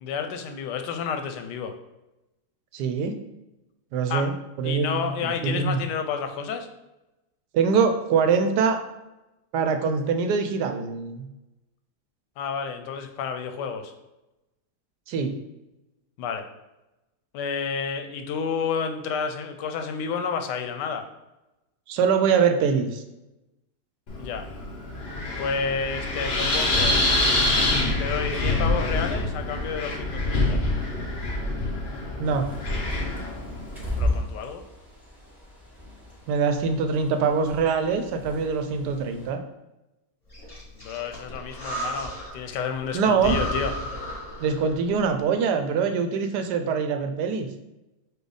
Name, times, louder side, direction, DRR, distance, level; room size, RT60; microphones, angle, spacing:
voice 1, 0.0-1.7 4.1-4.3 4.6-6.7 12.4-13.9 16.2-16.5 17.3-21.1 24.2-24.5 25.4-27.0 28.0-30.6 34.0-34.6 40.8-43.7, left 6 dB, 90° left, 7 dB, 1.2 m, -30 dB
voice 2, 2.7-3.1 3.9-5.8 7.5-8.8 9.5-11.3 15.1-15.3 21.9-23.0 32.2-32.5 36.3-39.4 42.9-43.4 44.4-47.5, right 5 dB, 80° right, 6 dB, 1.1 m, -24 dB
Wind, 24.1-34.2, left 2 dB, 50° left, 0.6 m, -26 dB
Bird, 32.2-39.3, left 1 dB, ahead, 0.7 m, -35 dB
Breathing, 40.3-42.5 42.8-42.9 43.2-44.9, equal, 20° left, 1.4 m, -33 dB
4.8 x 2.3 x 4.8 m, 0.98 s
omnidirectional pair, 1.8 m